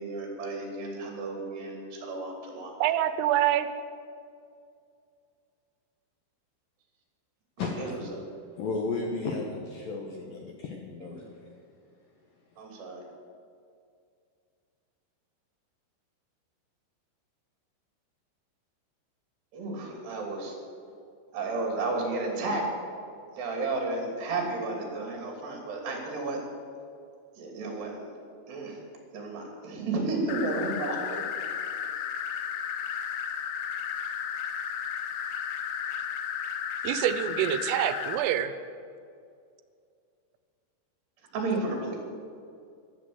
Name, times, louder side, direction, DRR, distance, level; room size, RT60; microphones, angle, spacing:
voice 1, 0.0-2.7 7.6-8.2 11.0-11.1 12.6-13.0 19.5-20.6 21.3-22.6 23.4-26.4 27.4-28.1 28.5-28.8 29.1-31.0 41.3-42.0, right 3 dB, 60° right, 1 dB, 4.9 m, -32 dB
voice 2, 2.8-3.7 36.8-38.5, right 11 dB, 90° right, 12 dB, 3.4 m, -26 dB
voice 3, 7.6-8.0 8.6-11.3, left 3 dB, 70° left, 1 dB, 2.2 m, -33 dB
sound 1, 30.3-38.2, left 8 dB, 90° left, 3.7 m, -33 dB
14.0 x 12.5 x 8.0 m, 2.3 s
omnidirectional pair, 5.6 m